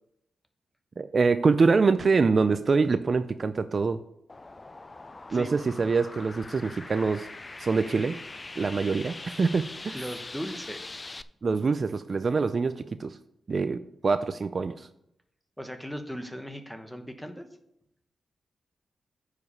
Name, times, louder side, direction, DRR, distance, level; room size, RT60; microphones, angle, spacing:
voice 1, 1.0-4.0 5.3-7.3 7.6-8.2 8.6-10.0 11.4-13.2 13.5-14.9, right 4 dB, 45° right, 12 dB, 0.4 m, -25 dB
sound 1, 4.3-11.2, left 2 dB, 25° left, 0.4 m, -42 dB
voice 2, 9.9-11.0 15.6-17.5, equal, ahead, 7 dB, 1.1 m, -38 dB
9.5 x 5.0 x 5.5 m, 0.78 s
cardioid pair, 90°, 0 cm